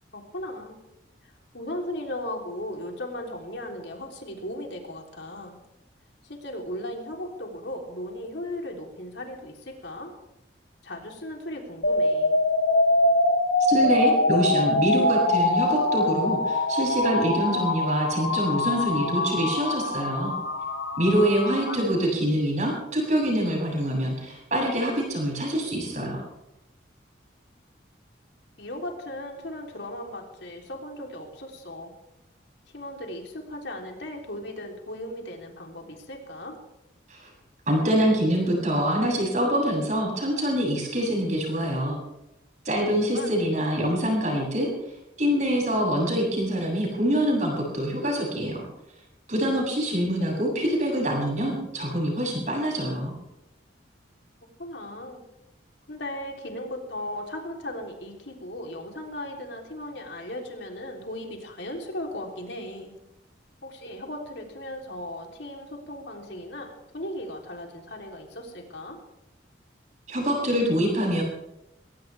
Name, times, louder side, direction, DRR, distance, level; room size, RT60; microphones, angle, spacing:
voice 1, 0.1-0.8 1.2-5.6 6.2-10.1 10.8-12.4 21.6-21.9 28.6-31.9 32.7-36.6 43.1-43.4 54.6-55.2 55.9-62.9 63.6-69.0, left 1 dB, 65° left, 1 dB, 3.5 m, -37 dB
sound 1, 11.8-21.8, left 1 dB, 90° left, 4.9 m, -24 dB
voice 2, 13.7-20.3 21.0-26.2 37.1-37.3 37.7-42.0 42.6-44.7 45.2-48.6 49.3-53.1 70.1-71.2, equal, 40° right, -2 dB, 7.9 m, -25 dB
22.0 x 18.0 x 3.5 m, 0.90 s
head